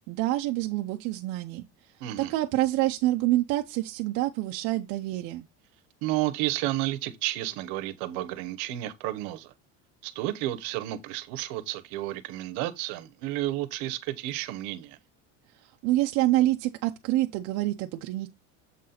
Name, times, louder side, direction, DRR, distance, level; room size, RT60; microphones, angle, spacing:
voice 1, 0.1-1.6 2.2-5.5 15.8-18.3, right 16 dB, 50° right, 0.6 m, -27 dB
voice 2, 2.0-2.3 6.0-9.5 10.0-15.0, right 15 dB, 65° right, 1.0 m, -31 dB
7.3 x 3.9 x 4.2 m
cardioid pair, 175°, 34 cm